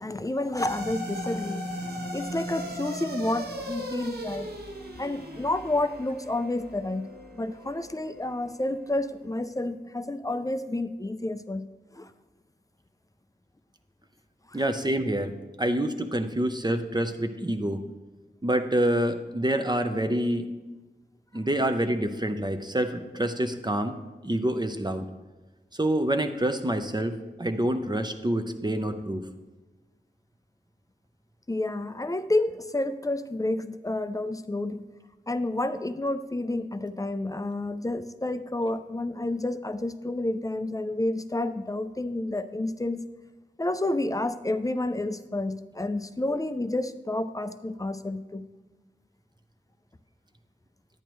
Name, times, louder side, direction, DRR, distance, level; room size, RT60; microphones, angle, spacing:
voice 1, 0.0-1.7 2.1-4.5 5.0-7.1 7.3-11.7 11.9-12.1 14.5-14.6 31.5-34.8 35.3-43.0 43.6-48.5, left 2 dB, 20° left, 11 dB, 0.5 m, -30 dB
sound 1, 0.6-9.1, equal, 60° right, 1.6 m, -37 dB
voice 2, 14.5-15.3 15.6-17.8 18.4-20.5 21.3-23.9 24.2-25.1 25.7-29.2, right 1 dB, 25° right, 7 dB, 0.6 m, -27 dB
10.5 x 9.0 x 3.1 m, 1.2 s
wide cardioid pair, 55°, 18 cm